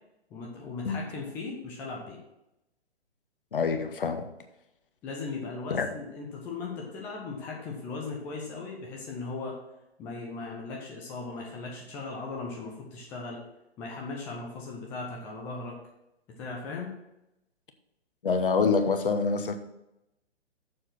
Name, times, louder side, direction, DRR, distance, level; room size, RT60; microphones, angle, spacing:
voice 1, 0.3-2.2 5.0-9.6 10.0-13.4 13.8-15.8 16.4-17.0, left 3 dB, 5° left, -2 dB, 0.5 m, -38 dB
voice 2, 3.5-4.3 5.7-5.9 18.2-19.6, left 5 dB, 55° left, 7 dB, 1.1 m, -26 dB
6.9 x 6.2 x 5.9 m, 0.88 s
figure-of-eight pair, 125°, 33 cm